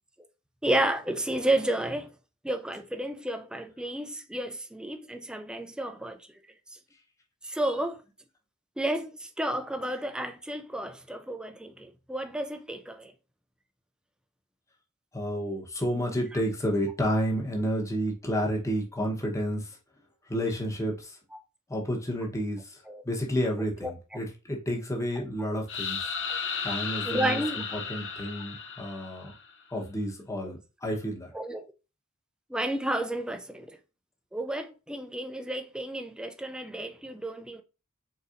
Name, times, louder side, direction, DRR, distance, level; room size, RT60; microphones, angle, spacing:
voice 1, 0.6-2.1 2.4-6.2 7.4-8.0 8.8-13.1 22.9-23.0 23.8-23.9 26.3-26.4 27.0-27.6 31.3-31.7 32.5-33.8 34.3-37.6, right 1 dB, 5° right, 0.3 m, -31 dB
voice 2, 15.1-19.8 20.3-21.2 21.7-26.0 26.6-29.3 29.7-31.3, equal, 15° left, 0.9 m, -30 dB
sound 1, 25.7-29.5, left 6 dB, 60° left, 0.7 m, -34 dB
4.1 x 3.9 x 2.5 m
head